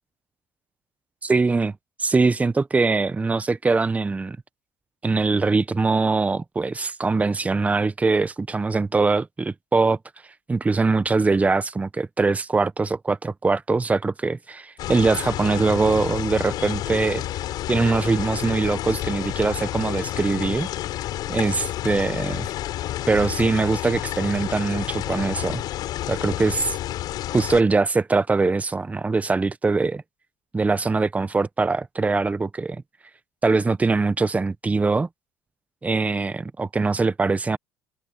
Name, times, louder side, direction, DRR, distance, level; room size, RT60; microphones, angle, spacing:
voice 1, 1.2-1.7 2.0-4.4 5.0-10.0 10.5-17.2 17.7-20.7 21.3-22.5 23.1-25.6 26.1-26.7 27.3-30.0 30.5-32.8 33.4-35.1 35.8-37.6, right 3 dB, 20° right, 1.0 m, -22 dB
sound 1, 14.8-27.6, left 14 dB, 65° left, 7.7 m, -30 dB
supercardioid pair, 80°, 7 cm